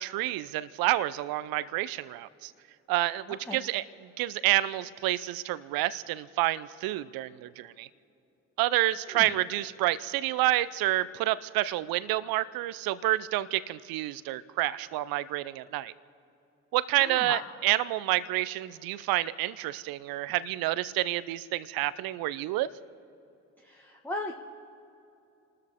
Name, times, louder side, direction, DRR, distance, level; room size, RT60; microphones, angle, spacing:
voice 1, 0.0-2.5 2.9-3.8 4.2-7.9 8.6-15.9 16.7-22.7, right 16 dB, 65° right, 17 dB, 0.7 m, -29 dB
voice 2, 17.0-17.4 23.6-24.3, left 1 dB, 5° left, 0 dB, 1.4 m, -36 dB
30.0 x 13.0 x 3.6 m, 2.9 s
hypercardioid pair, 45°, 39 cm